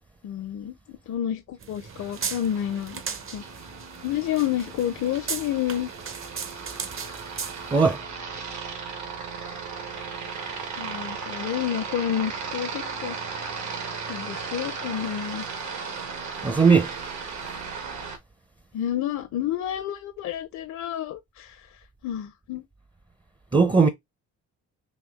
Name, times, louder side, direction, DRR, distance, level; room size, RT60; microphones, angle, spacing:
voice 1, 0.2-3.0 3.3-3.4 4.0-5.9 10.8-13.3 14.1-15.4 18.7-22.6, left 11 dB, 70° left, 0.6 m, -30 dB
sound 1, 1.6-8.0, right 6 dB, 45° right, 0.8 m, -37 dB
Aircraft, 1.9-18.2, right 5 dB, 65° right, 1.5 m, -36 dB
voice 2, 7.7-8.0 16.4-16.9 23.5-23.9, right 5 dB, 15° right, 0.5 m, -18 dB
4.2 x 2.7 x 3.5 m
cardioid pair, 90°, 30 cm